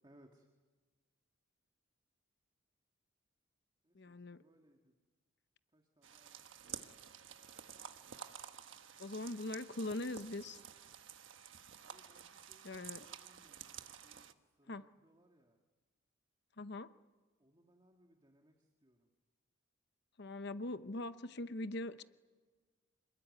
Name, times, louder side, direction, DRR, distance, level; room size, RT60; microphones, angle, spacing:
voice 1, 0.0-0.5 3.8-4.9 5.7-6.9 8.4-9.0 11.8-14.3 14.6-15.6 17.4-19.1, right 1 dB, 20° right, 3 dB, 2.0 m, -68 dB
voice 2, 3.9-4.4 9.0-10.6 12.6-13.1 14.7-14.9 16.6-16.9 20.2-22.0, left 2 dB, 55° left, 11 dB, 0.9 m, -42 dB
sound 1, 6.0-14.3, right 8 dB, 70° right, 1.3 m, -51 dB
27.0 x 21.5 x 9.7 m, 1.4 s
head